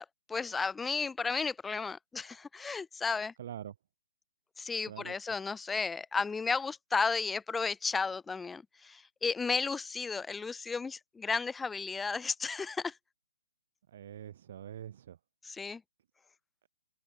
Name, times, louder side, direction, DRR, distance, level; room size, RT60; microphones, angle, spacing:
voice 1, 0.0-3.3 4.6-12.9 15.5-15.8, left 4 dB, 5° left, 0.4 m, -33 dB
voice 2, 3.4-3.7 4.9-5.2 13.9-15.2, right 10 dB, 50° right, 1.6 m, -44 dB
open air
hypercardioid pair, 150°, 0 cm